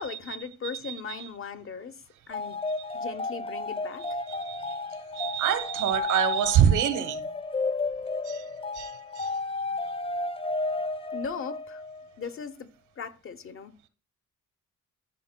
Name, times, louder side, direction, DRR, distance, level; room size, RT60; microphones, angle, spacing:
voice 1, 0.0-2.0 2.3-2.6 2.9-4.1 11.1-11.8 12.2-12.7 13.0-13.7, left 6 dB, 45° left, 0.8 m, -38 dB
voice 2, 0.7-1.3 4.3-4.8 5.1-7.3 8.2-8.4 8.7-9.3, right 9 dB, 85° right, 1.0 m, -26 dB
sound 1, 2.3-12.1, left 3 dB, 20° left, 0.4 m, -32 dB
13.0 x 5.1 x 2.2 m
cardioid pair, 90°, 30 cm